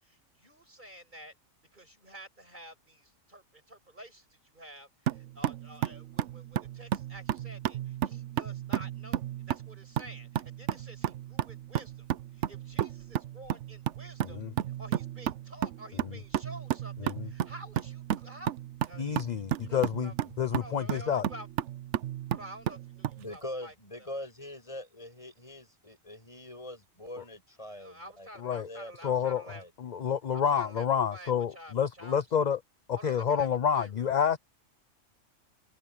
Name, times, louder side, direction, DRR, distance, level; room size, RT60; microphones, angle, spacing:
voice 1, 0.0-1.3 1.7-12.1 12.3-14.4 14.8-18.6 18.8-19.0 19.3-20.1 20.5-21.5 22.3-24.1 27.7-29.7 30.3-32.2 33.0-34.1, right 1 dB, 35° right, 7.8 m, -50 dB
sound 1, 5.1-23.2, right 11 dB, 65° right, 0.9 m, -33 dB
voice 2, 19.0-20.1 20.4-21.3 28.4-28.7 29.0-29.4 29.8-32.6 32.9-34.4, left 7 dB, 45° left, 0.6 m, -28 dB
voice 3, 23.2-28.3 28.7-29.1 29.4-29.7, left 1 dB, 25° left, 7.8 m, -43 dB
omnidirectional pair, 1.4 m